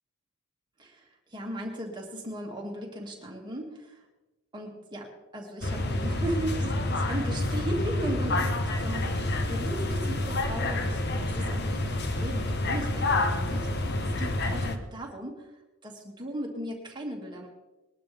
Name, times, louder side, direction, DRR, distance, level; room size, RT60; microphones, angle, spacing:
voice 1, 0.8-4.0 4.5-13.7 14.0-15.5 15.8-17.5, right 1 dB, 20° right, 0 dB, 2.2 m, -37 dB
sound 1, 5.6-14.8, left 2 dB, 50° left, 1.1 m, -28 dB
21.0 x 12.0 x 3.5 m, 1.1 s
head